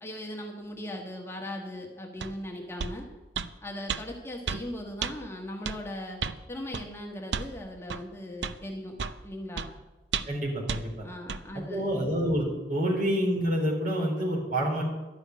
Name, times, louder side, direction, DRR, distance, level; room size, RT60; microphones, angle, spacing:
voice 1, 0.0-3.1 3.6-6.2 6.5-9.0 9.2-9.7 11.0-11.9, left 1 dB, 15° left, 0 dB, 1.5 m, -38 dB
sound 1, 2.2-2.3 2.8-3.0 3.4-3.5 3.9-4.0 4.5-4.6 5.0-5.1 5.7-5.8 6.2-6.4 6.7-6.9 7.3-7.5 7.9-8.0 8.4-8.6 9.0-9.2 9.6-9.7 10.1-10.4 10.7-10.8 11.3-11.4, right 6 dB, 75° right, 0.6 m, -32 dB
voice 2, 10.3-11.1 11.5-14.8, equal, 50° right, -2 dB, 4.0 m, -28 dB
12.5 x 6.3 x 9.6 m, 1.1 s
head